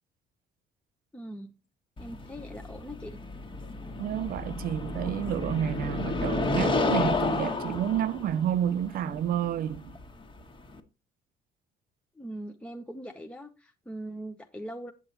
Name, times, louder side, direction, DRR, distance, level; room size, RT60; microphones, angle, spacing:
voice 1, 1.1-1.5 2.0-3.2 12.1-14.9, right 1 dB, 5° left, 0.9 m, -41 dB
sound 1, 2.0-10.8, left 3 dB, 30° left, 1.5 m, -31 dB
voice 2, 4.0-9.8, right 10 dB, 60° right, 0.6 m, -30 dB
8.9 x 6.9 x 4.1 m
cardioid pair, 110°, 17 cm